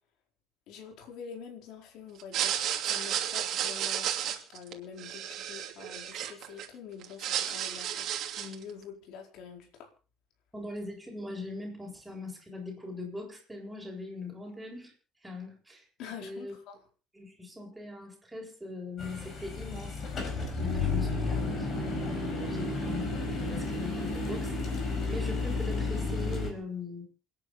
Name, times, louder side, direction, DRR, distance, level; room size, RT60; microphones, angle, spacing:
voice 1, 0.7-8.1 8.4-9.9 16.0-16.8, left 7 dB, 60° left, 2 dB, 4.5 m, -46 dB
sound 1, 2.2-6.7 7.0-8.6, right 10 dB, 45° right, 2.8 m, -32 dB
voice 2, 10.5-14.9 15.2-15.8 16.2-16.5 17.1-24.6 25.1-27.1, left 2 dB, 5° right, -2 dB, 7.9 m, -41 dB
sound 2, 19.0-26.5, left 3 dB, 35° left, 5.1 m, -32 dB
28.5 x 10.0 x 4.2 m, 0.36 s
cardioid pair, 160°, 0 cm